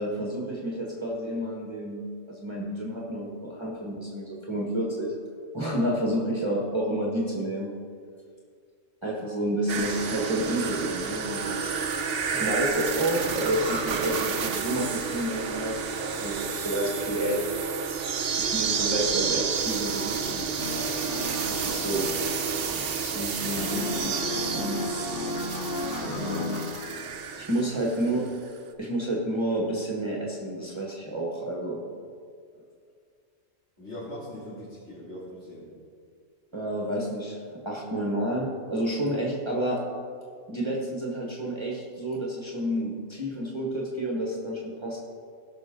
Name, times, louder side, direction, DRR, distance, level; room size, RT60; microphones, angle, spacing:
voice 1, 0.0-5.1 5.5-7.7 9.0-11.7 12.3-17.4 18.4-20.5 21.5-22.1 22.7-24.8 25.4-25.7 26.0-26.6 27.4-28.3 28.8-31.9 36.5-39.8 40.5-45.0, right 1 dB, 25° right, -3 dB, 1.5 m, -30 dB
sound 1, 9.7-28.2 28.5-28.6, right 6 dB, 65° right, 1.0 m, -30 dB
sound 2, 20.6-23.3 23.6-27.2, left 3 dB, 60° left, 1.0 m, -35 dB
voice 2, 27.3-27.6 33.8-35.7, left 1 dB, 85° left, -11 dB, 3.3 m, -41 dB
17.0 x 6.2 x 3.7 m, 2.2 s
omnidirectional pair, 1.1 m